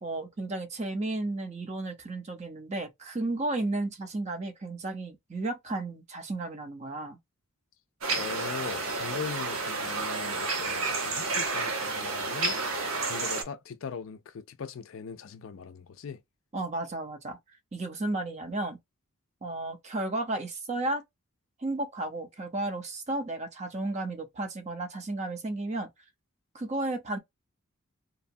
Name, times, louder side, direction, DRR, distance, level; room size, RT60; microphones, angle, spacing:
voice 1, 0.0-7.2 16.5-17.4 17.7-18.8 19.4-21.0 21.6-25.9 26.5-27.2, right 2 dB, 30° right, 0.6 m, -33 dB
sound 1, 8.0-13.4, right 3 dB, 70° right, 0.8 m, -30 dB
voice 2, 8.1-12.6 13.0-16.2, left 6 dB, 65° left, 0.4 m, -40 dB
2.9 x 2.2 x 2.6 m
head